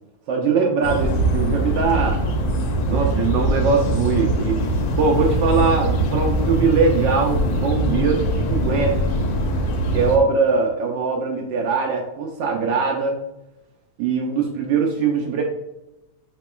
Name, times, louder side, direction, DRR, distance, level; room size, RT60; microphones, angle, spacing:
voice 1, 0.3-2.2 2.8-4.6 4.9-9.3 9.9-13.2 14.0-15.4, right 5 dB, 75° right, 0 dB, 1.0 m, -21 dB
sound 1, 0.8-10.2, right 1 dB, 75° left, 1.5 m, -22 dB
5.8 x 3.0 x 2.2 m, 0.92 s
omnidirectional pair, 2.4 m